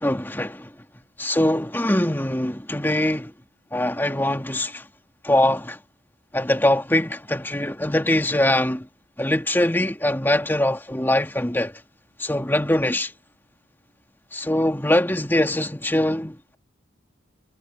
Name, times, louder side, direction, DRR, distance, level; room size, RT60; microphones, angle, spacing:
voice 1, 0.0-0.7 1.2-3.3 3.7-4.8 5.2-5.8 6.3-8.9 9.2-11.7 12.2-13.1 14.3-16.6, left 1 dB, 10° left, 2.3 m, -22 dB
head